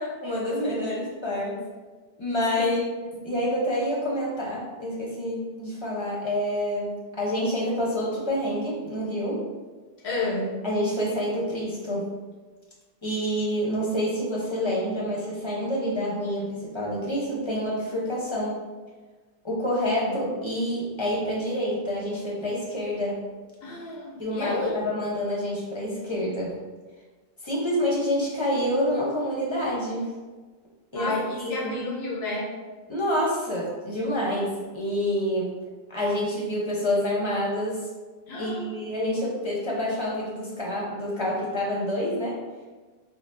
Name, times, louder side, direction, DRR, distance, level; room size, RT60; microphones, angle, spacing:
voice 1, 0.2-1.6 2.2-9.4 10.6-12.1 13.0-18.6 19.4-23.2 24.2-26.6 27.4-30.1 30.9-31.8 32.9-35.6 35.9-37.9 38.4-42.4, equal, 30° left, -5 dB, 0.8 m, -27 dB
voice 2, 10.0-10.5 23.6-24.8 30.9-32.5 38.3-38.7, left 2 dB, 85° left, -4 dB, 1.0 m, -30 dB
5.6 x 2.0 x 2.6 m, 1.3 s
omnidirectional pair, 1.0 m